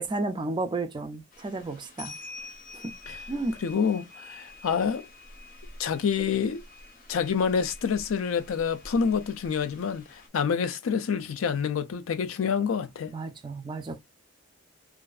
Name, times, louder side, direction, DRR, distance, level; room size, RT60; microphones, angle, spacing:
voice 1, 0.0-2.2 2.7-2.8 3.3-3.6 13.1-14.0, right 2 dB, 25° right, 0.3 m, -32 dB
sound 1, 1.3-10.3, left 2 dB, 45° left, 0.7 m, -47 dB
voice 2, 3.6-5.1 5.8-6.6 7.1-13.1, left 6 dB, 85° left, 0.4 m, -27 dB
2.5 x 2.3 x 2.3 m
head